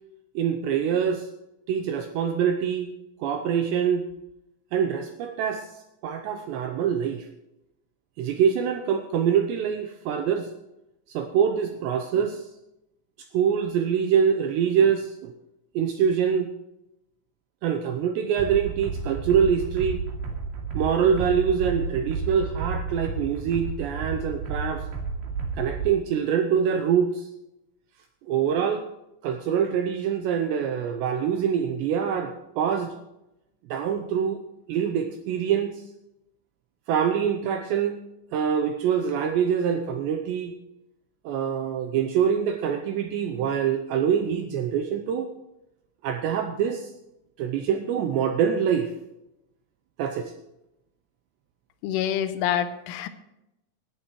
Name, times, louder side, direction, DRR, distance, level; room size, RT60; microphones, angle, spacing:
voice 1, 0.4-1.3 1.7-2.9 3.2-4.1 4.7-5.7 6.0-7.3 8.2-10.5 11.1-12.4 13.3-15.3 15.8-16.5 17.6-20.0 20.7-24.8 25.5-27.3 28.3-28.8 29.2-32.9 33.7-34.4 34.7-35.8 36.9-38.0 38.3-40.5 41.3-45.3 46.0-46.9 47.4-48.9 50.0-50.3, right 8 dB, 80° right, 6 dB, 2.6 m, -24 dB
sound 1, 18.4-25.9, right 4 dB, 55° right, 4.1 m, -32 dB
voice 2, 51.8-53.1, left 10 dB, 80° left, 10 dB, 3.3 m, -26 dB
18.5 x 11.0 x 3.1 m, 0.90 s
omnidirectional pair, 5.7 m